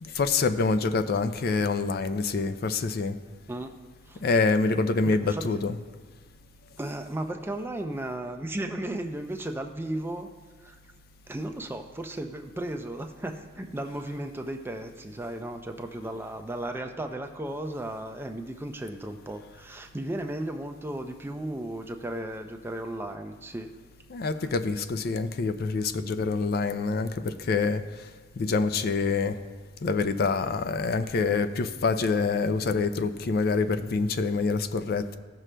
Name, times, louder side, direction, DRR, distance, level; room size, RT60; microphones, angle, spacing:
voice 1, 0.0-3.2 4.2-5.8 24.1-29.4 29.8-35.2, left 4 dB, 50° left, 10 dB, 0.4 m, -26 dB
voice 2, 5.0-5.6 6.8-10.3 10.6-10.8 11.3-23.7 24.4-24.5, right 1 dB, 10° right, 5 dB, 0.4 m, -35 dB
15.5 x 6.1 x 2.2 m, 1.5 s
head